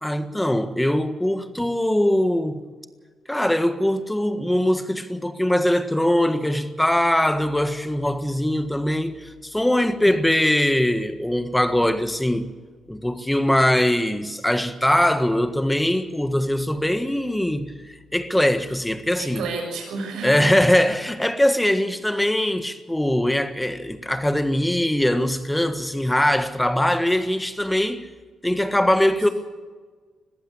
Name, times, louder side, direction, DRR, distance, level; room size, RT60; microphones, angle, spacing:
voice 1, 0.0-2.6 3.3-12.5 12.9-19.4 20.2-28.1 28.4-29.3, left 1 dB, 5° left, 1.5 m, -21 dB
voice 2, 19.2-20.6, right 3 dB, 85° right, 6.5 m, -30 dB
21.0 x 15.0 x 8.5 m
cardioid pair, 105°, 0 cm